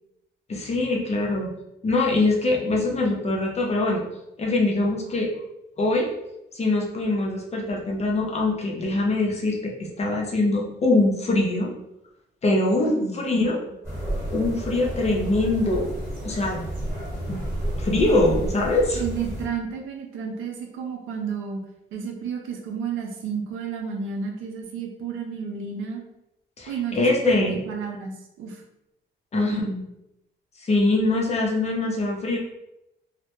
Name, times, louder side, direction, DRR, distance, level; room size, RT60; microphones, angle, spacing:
voice 1, 0.5-1.5 1.8-4.0 4.4-5.3 5.8-6.1 6.5-11.7 12.4-13.6 14.3-15.9 16.2-16.7 17.3-17.4 17.8-19.0 26.6-27.6 29.3-29.6 30.6-32.4, left 2 dB, 35° left, -1 dB, 0.5 m, -23 dB
voice 2, 12.8-13.5 18.9-21.6 21.9-26.0 26.7-28.6 29.3-29.8, right 6 dB, 85° right, 2 dB, 0.5 m, -32 dB
sound 1, 13.8-19.5, right 1 dB, 10° right, 1.2 m, -31 dB
2.1 x 2.0 x 2.9 m, 0.87 s
cardioid pair, 90°, 20 cm